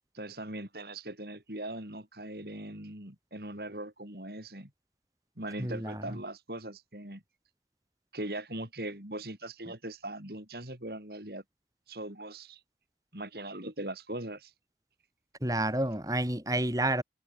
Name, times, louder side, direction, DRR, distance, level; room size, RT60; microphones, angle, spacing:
voice 1, 0.1-4.7 5.4-7.2 8.1-11.4 11.9-12.6 13.1-14.5, right 1 dB, 60° right, 5.2 m, -40 dB
voice 2, 5.6-6.1 15.4-17.0, right 1 dB, 20° right, 4.2 m, -29 dB
head